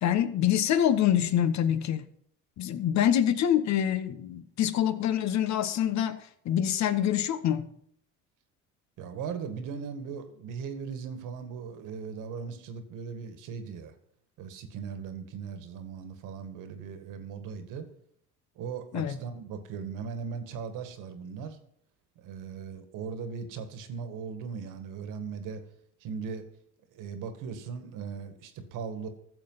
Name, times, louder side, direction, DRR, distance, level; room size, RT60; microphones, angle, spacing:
voice 1, 0.0-2.1 2.6-6.2 6.4-7.7 18.9-19.2, left 10 dB, 55° left, 12 dB, 1.2 m, -25 dB
voice 2, 9.0-13.9 14.4-17.9 18.6-21.6 22.2-25.6 26.0-26.5 26.9-29.1, right 6 dB, 70° right, 9 dB, 2.0 m, -38 dB
15.0 x 7.0 x 5.7 m, 0.67 s
supercardioid pair, 80°, 33 cm